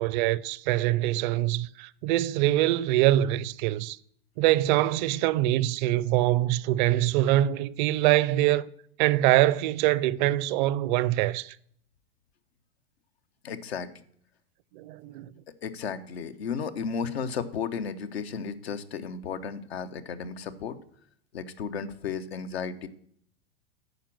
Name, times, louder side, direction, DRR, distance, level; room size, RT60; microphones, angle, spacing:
voice 1, 0.0-4.0 4.4-8.7 9.0-11.5 14.7-15.3, right 15 dB, 50° right, 0.5 m, -24 dB
voice 2, 13.4-13.9 15.6-20.8 21.3-22.9, left 6 dB, 85° left, 0.9 m, -34 dB
9.3 x 5.2 x 7.3 m
hypercardioid pair, 110°, 31 cm